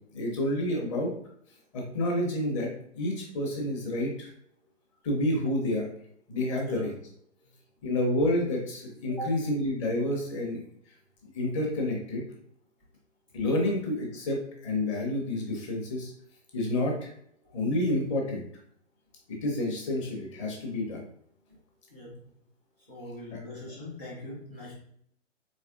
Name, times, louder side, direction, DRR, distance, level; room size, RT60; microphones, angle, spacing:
voice 1, 0.1-1.1 1.7-2.7 2.9-4.3 5.0-5.9 6.3-6.9 7.8-10.6 11.3-12.2 13.3-16.1 16.5-17.1 17.5-18.4 19.3-21.0 23.3-23.4, left 1 dB, 25° left, -1 dB, 0.9 m, -29 dB
voice 2, 9.1-9.4 17.4-17.5 21.9-22.2 22.9-24.8, left 1 dB, 10° left, -8 dB, 0.5 m, -40 dB
4.1 x 2.9 x 2.5 m, 0.67 s
figure-of-eight pair, 130°, 37 cm